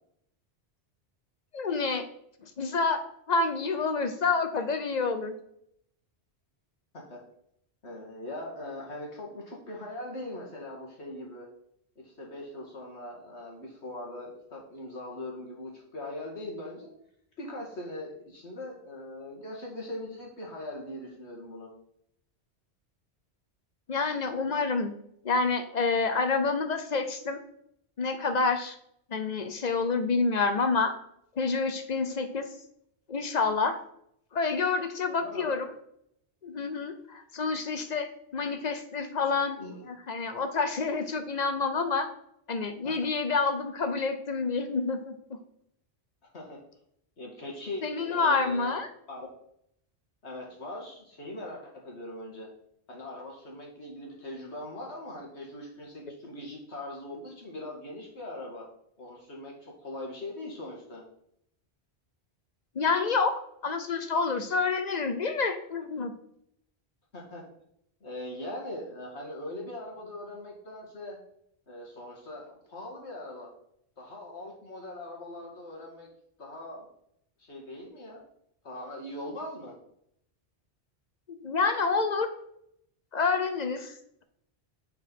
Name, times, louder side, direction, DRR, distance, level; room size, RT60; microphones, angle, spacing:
voice 1, 1.5-2.1 2.4-3.0 3.3-5.3 23.9-24.9 25.2-27.4 28.0-28.8 29.1-31.0 31.4-32.5 33.1-33.8 34.3-35.7 36.4-42.1 42.5-45.1 47.8-48.9 62.7-66.1 81.3-82.3 83.1-83.9, left 4 dB, 45° left, 8 dB, 0.9 m, -28 dB
voice 2, 7.8-11.5 12.0-16.9 17.4-21.7 35.2-35.6 39.6-39.8 42.8-43.1 46.3-46.6 47.2-48.8 49.1-49.3 50.2-52.5 52.9-58.7 59.0-61.0 67.1-67.4 68.0-71.2 71.7-73.5 74.0-76.1 76.4-76.9 77.4-78.3 78.6-79.8, left 1 dB, 90° left, -1 dB, 2.4 m, -41 dB
7.1 x 4.7 x 5.4 m, 0.72 s
omnidirectional pair, 1.1 m